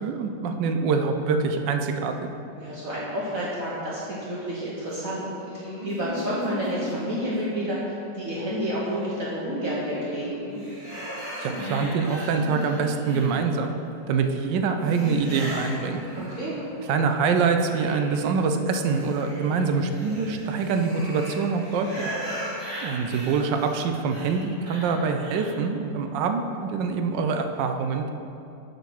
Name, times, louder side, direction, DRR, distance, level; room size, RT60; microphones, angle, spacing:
voice 1, 0.0-2.2 11.4-13.8 14.1-16.3 16.9-22.1 22.8-28.1, right 5 dB, 75° right, 6 dB, 1.3 m, -25 dB
voice 2, 2.5-7.8 8.1-10.4 16.1-16.6, equal, 55° right, -7 dB, 1.3 m, -30 dB
sound 1, 5.0-8.1 9.5-10.6 11.4-13.5 14.9-15.2, equal, 25° right, 1.1 m, -37 dB
sound 2, 10.6-13.7 14.8-16.8 17.2-25.7, equal, 30° left, 1.8 m, -38 dB
8.0 x 3.9 x 6.1 m, 2.7 s
omnidirectional pair, 2.0 m